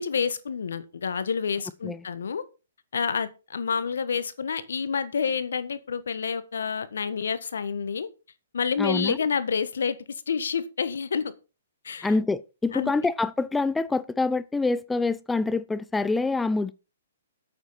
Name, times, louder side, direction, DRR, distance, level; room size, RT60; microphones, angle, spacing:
voice 1, 0.0-2.4 2.9-8.1 8.5-11.3 11.8-12.1 12.7-12.9, left 6 dB, 75° left, 1.4 m, -28 dB
voice 2, 8.8-9.2 12.0-16.7, left 3 dB, 5° left, 0.4 m, -26 dB
8.8 x 7.8 x 5.8 m
hypercardioid pair, 140°, 0 cm